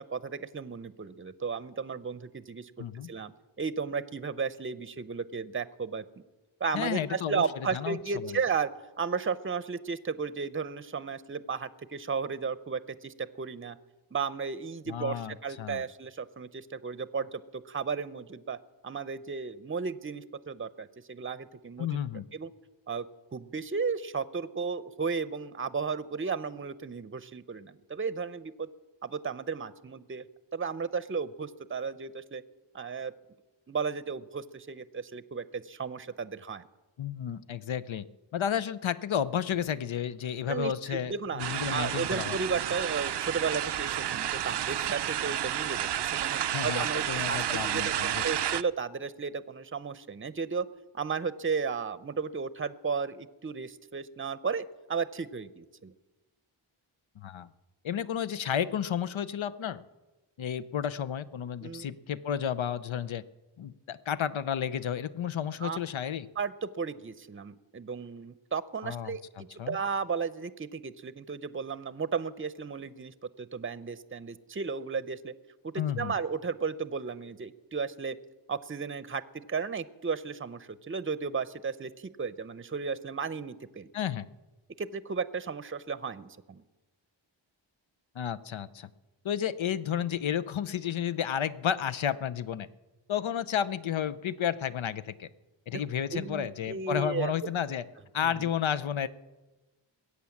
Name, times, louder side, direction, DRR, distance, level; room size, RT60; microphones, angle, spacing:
voice 1, 0.0-2.7 3.1-3.3 3.6-6.0 6.6-8.7 9.0-13.8 14.1-18.6 18.8-21.9 22.3-22.5 22.9-23.0 23.3-28.7 29.0-30.2 30.5-32.4 32.7-33.1 33.7-36.6 40.5-41.4 41.7-50.7 50.9-55.9 61.6-61.9 65.6-65.8 66.4-75.3 75.6-78.2 78.5-81.9 82.2-83.9 84.8-86.6 96.1-97.3 98.2-98.5, right 5 dB, 25° right, 16 dB, 0.7 m, -34 dB
voice 2, 2.8-3.1 6.7-7.4 7.7-8.4 14.9-15.8 21.8-22.2 37.0-38.1 38.3-42.4 46.5-48.2 57.2-57.5 57.8-59.8 60.4-63.2 63.6-66.3 68.8-69.2 69.6-69.8 75.8-76.1 83.9-84.3 88.1-88.9 89.2-92.7 93.1-95.3 95.7-97.8 98.1-99.1, left 9 dB, 70° left, 15 dB, 0.7 m, -32 dB
sound 1, 41.4-48.6, right 11 dB, 60° right, 0.5 m, -31 dB
21.0 x 8.4 x 7.2 m, 1.2 s
cardioid pair, 50°, 49 cm